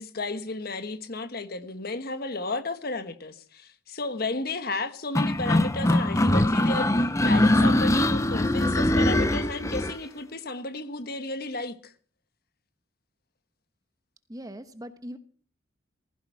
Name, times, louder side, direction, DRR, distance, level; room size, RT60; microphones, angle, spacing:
voice 1, 0.0-11.9, left 2 dB, 50° left, 1.3 m, -33 dB
sound 1, 5.1-10.0, left 1 dB, 15° left, 0.6 m, -22 dB
voice 2, 14.3-15.2, equal, 20° right, 1.0 m, -40 dB
16.0 x 15.0 x 4.7 m
head